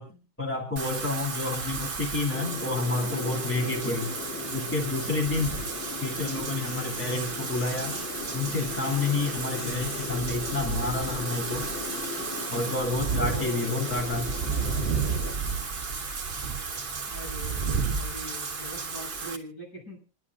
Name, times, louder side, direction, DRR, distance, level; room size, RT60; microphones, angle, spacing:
voice 1, 0.4-4.1 4.5-5.7 6.0-8.0 8.3-11.7 12.5-14.3, left 3 dB, 5° left, 0 dB, 2.7 m, -29 dB
Wind / Rain, 0.8-19.4, right 5 dB, 30° right, 2.0 m, -33 dB
sound 1, 2.3-15.3, left 5 dB, 75° left, 3.6 m, -38 dB
voice 2, 13.3-14.0 17.1-20.0, equal, 60° left, -2 dB, 8.0 m, -42 dB
28.0 x 11.0 x 2.4 m, 0.35 s
omnidirectional pair, 2.1 m